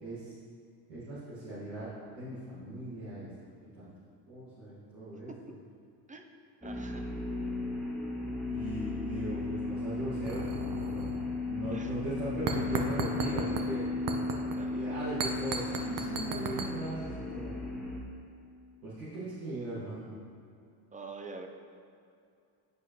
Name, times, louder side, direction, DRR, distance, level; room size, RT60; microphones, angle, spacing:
voice 1, 0.0-0.3 0.9-1.9 2.1-3.3 3.7-3.9 4.3-5.3 8.5-11.1 11.4-13.8 14.7-17.5 18.8-20.1, right 1 dB, 90° right, -11 dB, 1.6 m, -38 dB
voice 2, 5.1-5.5 6.1-6.2 6.6-7.1 11.7-12.0 14.6-15.0 20.9-21.5, right 3 dB, 15° right, 3 dB, 0.7 m, -46 dB
sound 1, 6.6-18.0, left 3 dB, ahead, 1.1 m, -35 dB
sound 2, 10.2-11.4 11.6-11.8 12.5-13.7 14.1-14.5 15.2-16.7, right 4 dB, 40° right, 0.8 m, -35 dB
9.4 x 4.8 x 2.9 m, 2.5 s
supercardioid pair, 70°, 49 cm